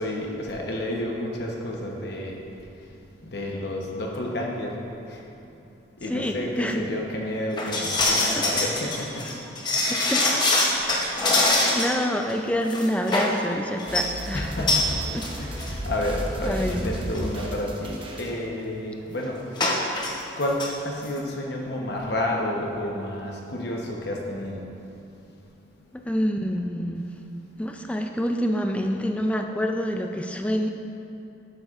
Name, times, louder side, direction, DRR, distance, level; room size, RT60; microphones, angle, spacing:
voice 1, 0.0-5.3 5.7-9.6 10.8-11.8 14.3-24.8 25.1-26.0, left 1 dB, 55° left, -1 dB, 1.0 m, -31 dB
voice 2, 6.1-6.8 8.3-8.5 9.9-10.4 11.2-11.3 11.7-14.5 15.1-15.2 16.4-16.9 26.0-27.1 27.6-30.7, equal, 5° left, 3 dB, 0.4 m, -27 dB
sound 1, 7.6-12.0 12.3-12.4 12.7-13.4 13.8-14.1 14.7-14.9 15.2-15.3 15.6-15.7 16.5-16.6 16.9-17.2 19.6-20.1 20.4-20.7 21.0-21.1, left 2 dB, 25° left, 0.8 m, -23 dB
sound 2, 13.9-18.3, equal, 25° right, 0.8 m, -33 dB
12.0 x 8.4 x 2.5 m, 2.8 s
head